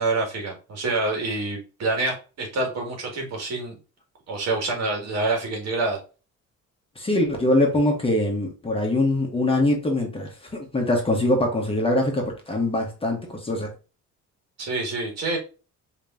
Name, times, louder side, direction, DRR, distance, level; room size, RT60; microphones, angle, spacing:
voice 1, 0.0-3.8 4.3-6.0 14.6-15.4, right 2 dB, 55° right, 1.9 m, -27 dB
voice 2, 7.0-13.7, left 1 dB, 20° left, 1.0 m, -23 dB
5.1 x 2.9 x 2.5 m
cardioid pair, 155°, 30 cm